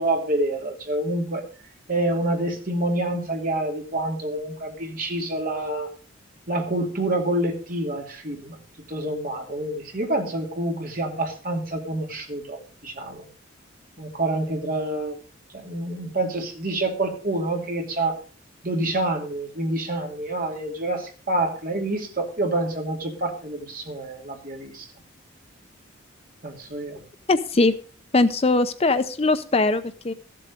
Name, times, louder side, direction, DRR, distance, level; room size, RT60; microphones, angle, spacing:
voice 1, 0.0-1.4 1.9-5.9 6.5-8.6 8.9-13.2 14.0-15.2 15.5-18.1 18.6-24.9 26.4-27.0, right 1 dB, 45° right, 2 dB, 2.4 m, -27 dB
voice 2, 27.3-27.7 28.1-30.1, left 2 dB, 30° left, 12 dB, 0.5 m, -21 dB
14.0 x 7.7 x 5.2 m, 0.40 s
head